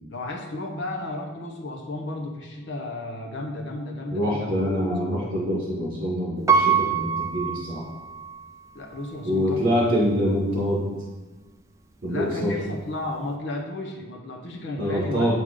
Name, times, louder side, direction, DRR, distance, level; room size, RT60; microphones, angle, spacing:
voice 1, 0.1-5.2 8.7-9.7 12.1-15.3, left 2 dB, 55° left, 1 dB, 1.0 m, -33 dB
voice 2, 4.1-7.8 9.2-10.9 12.0-12.6 14.8-15.3, equal, 50° right, -7 dB, 1.8 m, -25 dB
Piano, 6.5-8.5 9.0-9.1, right 6 dB, 15° right, 0.4 m, -23 dB
8.1 x 3.7 x 5.1 m, 1.2 s
head